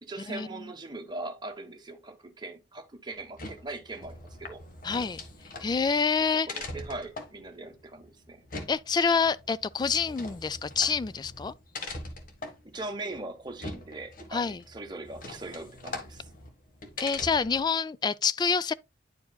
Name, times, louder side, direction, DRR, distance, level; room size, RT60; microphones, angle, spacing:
voice 1, 0.0-4.6 6.2-8.4 12.6-16.3, right 2 dB, 25° right, 1.2 m, -40 dB
sound 1, 3.2-17.7, left 2 dB, 50° left, 1.4 m, -42 dB
voice 2, 4.8-5.2 5.6-6.5 8.7-11.5 14.3-14.6 17.0-18.7, left 5 dB, 25° left, 0.3 m, -27 dB
10.5 x 4.8 x 2.2 m
head